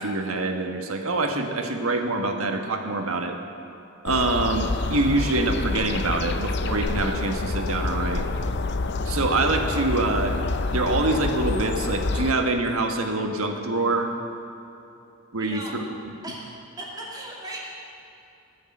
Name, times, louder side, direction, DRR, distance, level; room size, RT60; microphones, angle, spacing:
voice 1, 0.0-3.4 4.0-8.2 9.0-10.4 10.7-14.1 15.3-16.2, right 2 dB, 90° right, 4 dB, 1.4 m, -25 dB
sound 1, 4.1-12.3, left 3 dB, 55° left, 0.6 m, -27 dB
voice 2, 15.4-15.7 16.2-16.4 16.8-17.6, right 1 dB, 20° right, -4 dB, 2.3 m, -37 dB
20.0 x 6.6 x 8.5 m, 2.8 s
head